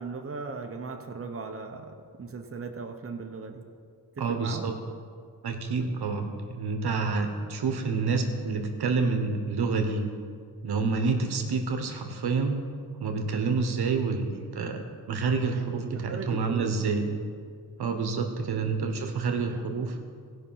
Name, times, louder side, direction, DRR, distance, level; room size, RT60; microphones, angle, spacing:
voice 1, 0.0-3.7 4.1-4.7 15.5-17.2 18.5-18.8, right 4 dB, 35° right, 3 dB, 1.1 m, -38 dB
voice 2, 4.2-4.7 5.4-10.1 10.6-12.6 13.0-14.8 15.1-17.0 17.8-20.0, right 4 dB, 75° right, 4 dB, 1.2 m, -28 dB
16.0 x 5.6 x 5.7 m, 2.1 s
cardioid pair, 70°, 39 cm